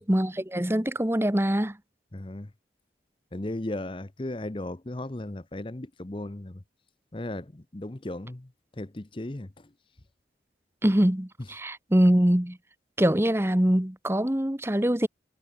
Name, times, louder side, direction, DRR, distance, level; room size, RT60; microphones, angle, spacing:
voice 1, 0.0-1.8 10.8-12.6 13.0-15.1, equal, 15° right, 1.0 m, -23 dB
voice 2, 2.1-2.5 3.3-6.5 7.1-7.4 7.7-8.4 8.8-9.5, left 1 dB, 30° left, 0.8 m, -35 dB
head